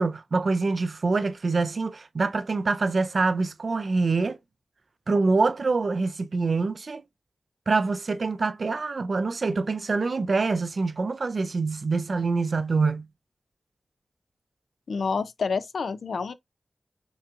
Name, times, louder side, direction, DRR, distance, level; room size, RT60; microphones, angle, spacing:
voice 1, 0.0-4.4 5.1-7.0 7.7-13.1, right 3 dB, 65° right, 0.4 m, -25 dB
voice 2, 14.9-16.3, left 5 dB, 90° left, 0.4 m, -28 dB
6.7 x 2.7 x 2.4 m
wide cardioid pair, 60°, 0 cm